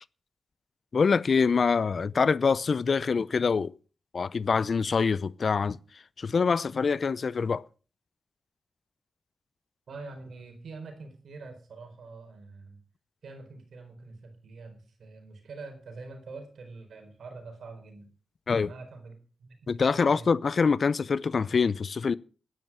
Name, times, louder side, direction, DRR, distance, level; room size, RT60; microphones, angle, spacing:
voice 1, 0.9-3.7 4.1-5.8 6.2-7.6 18.5-18.7 19.7-22.1, left 5 dB, 60° left, 0.6 m, -25 dB
voice 2, 9.9-12.8 13.2-18.1 18.6-20.3, right 3 dB, 80° right, 4.5 m, -45 dB
12.5 x 11.0 x 6.1 m
cardioid pair, 60°, 0 cm